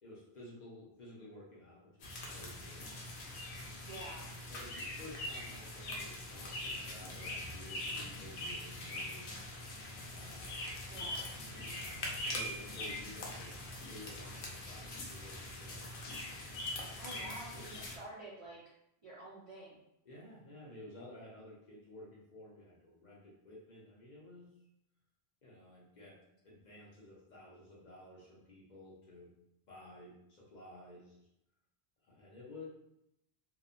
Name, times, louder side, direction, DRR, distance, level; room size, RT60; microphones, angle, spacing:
voice 1, 0.0-2.9 4.5-9.3 10.0-10.7 11.9-15.9 17.5-17.9 20.0-24.5 25.4-29.3 29.7-31.3 32.0-32.7, left 1 dB, 50° left, -4 dB, 0.6 m, -53 dB
sound 1, 2.0-18.0, left 1 dB, 85° left, 0.9 m, -42 dB
voice 2, 3.9-4.3 10.9-11.3 17.0-18.6 19.0-19.8, right 2 dB, 50° right, -6 dB, 0.4 m, -49 dB
2.8 x 2.0 x 2.4 m, 0.82 s
omnidirectional pair, 1.1 m